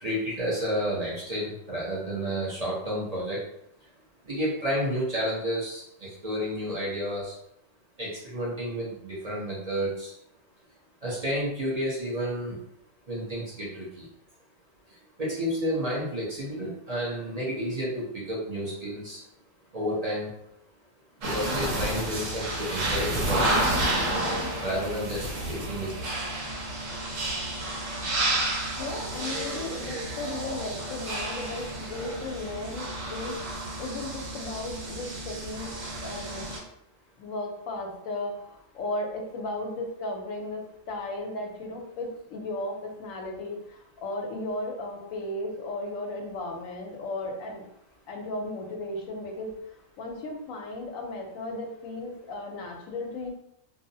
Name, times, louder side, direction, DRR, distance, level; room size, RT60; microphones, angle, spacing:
voice 1, 0.0-3.4 4.3-7.3 8.0-10.1 11.0-12.6 13.1-14.0 15.2-19.2 19.7-20.3 21.2-23.7 24.6-26.3, equal, 40° right, -6 dB, 0.6 m, -31 dB
sound 1, 21.2-36.6, right 1 dB, 75° right, 1.1 m, -31 dB
voice 2, 28.8-33.4 33.8-35.7 36.0-36.5 37.2-40.6 40.9-47.6 48.1-49.5 50.0-53.3, left 2 dB, 80° left, 2 dB, 1.0 m, -35 dB
2.7 x 2.0 x 2.6 m, 0.75 s
omnidirectional pair, 1.4 m